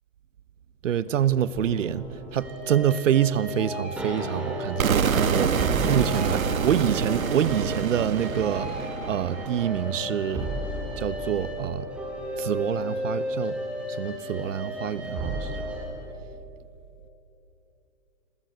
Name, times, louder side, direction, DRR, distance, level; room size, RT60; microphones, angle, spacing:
voice 1, 0.8-2.1 2.3-10.5 11.0-11.9 12.4-13.6 13.9-15.6, right 9 dB, 65° right, 1.2 m, -26 dB
sound 1, 1.5-15.8, equal, 5° right, 4.6 m, -34 dB
sound 2, 4.8-10.7, right 6 dB, 80° right, 1.9 m, -27 dB
30.0 x 24.0 x 8.1 m
hypercardioid pair, 150°, 41 cm